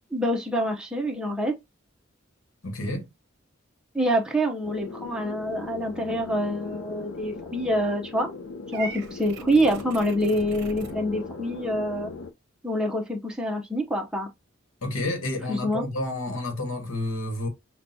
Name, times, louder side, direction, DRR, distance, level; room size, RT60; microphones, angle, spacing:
voice 1, 0.1-1.5 3.9-8.3 8.7-12.1 12.6-14.3 15.5-15.8, equal, 5° right, 0.6 m, -26 dB
voice 2, 2.6-3.1 14.8-17.5, left 1 dB, 90° left, 1.1 m, -30 dB
sound 1, 4.6-12.3, left 3 dB, 75° left, 0.5 m, -39 dB
Purr / Meow, 8.7-10.9, right 3 dB, 55° right, 0.7 m, -40 dB
5.8 x 2.2 x 2.6 m
head